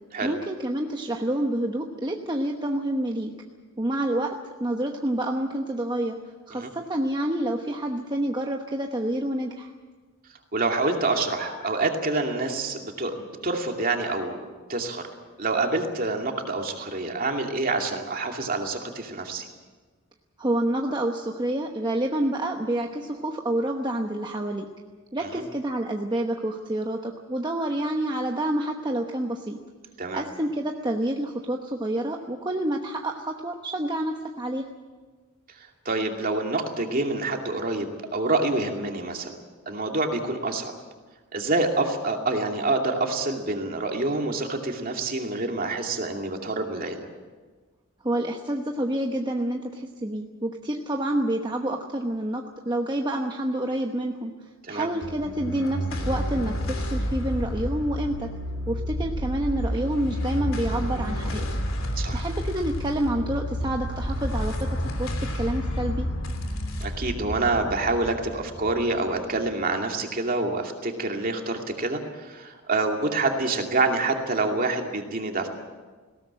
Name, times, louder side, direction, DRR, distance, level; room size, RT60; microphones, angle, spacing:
voice 1, 0.2-3.3 3.8-4.3 4.6-6.2 6.5-9.7 20.4-24.7 25.1-29.6 30.1-34.7 48.0-58.3 58.7-61.5 62.1-66.1, right 1 dB, 20° right, 2 dB, 1.0 m, -28 dB
voice 2, 10.5-15.0 15.4-19.5 25.2-25.4 30.0-30.2 35.8-39.3 39.7-40.7 41.3-47.0 54.6-54.9 62.0-62.2 66.8-75.5, right 2 dB, 45° right, 3 dB, 2.5 m, -27 dB
sound 1, 55.0-69.6, equal, 70° left, 3.2 m, -30 dB
20.0 x 17.5 x 8.8 m, 1.4 s
head